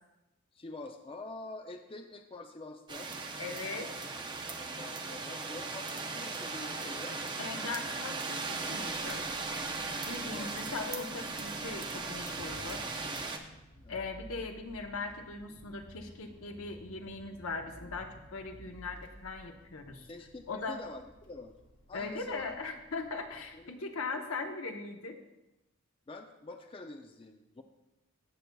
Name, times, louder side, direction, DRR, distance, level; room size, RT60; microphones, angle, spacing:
voice 1, 0.5-3.1 4.6-7.2 10.3-10.5 13.8-14.0 20.1-21.5 21.9-22.4 23.6-23.7 26.1-27.6, left 2 dB, 25° left, 4 dB, 0.4 m, -46 dB
sound 1, 2.9-13.4, right 3 dB, 20° right, 0.6 m, -38 dB
voice 2, 3.4-4.2 7.4-9.3 10.1-12.9 13.9-20.1 20.5-20.8 21.9-25.2, left 3 dB, 80° left, 5 dB, 0.9 m, -40 dB
Vehicle horn car horn honking, 8.6-23.9, left 2 dB, 60° left, 1.5 m, -53 dB
16.5 x 6.7 x 2.3 m, 0.96 s
head